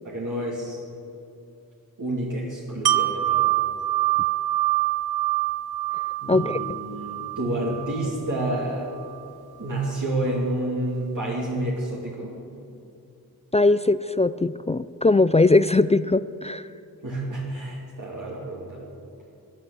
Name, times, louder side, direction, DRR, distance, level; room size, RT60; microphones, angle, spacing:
voice 1, 0.0-0.8 2.0-3.5 6.2-8.9 9.6-12.3 17.0-18.8, right 1 dB, 55° right, -4 dB, 2.7 m, -29 dB
Wind chime, 2.9-8.7 9.1-9.2, right 15 dB, 85° right, 0.6 m, -25 dB
voice 2, 6.3-6.8 13.5-16.6, left 2 dB, 20° left, 15 dB, 0.3 m, -20 dB
13.0 x 10.5 x 8.6 m, 2.6 s
cardioid pair, 55°, 37 cm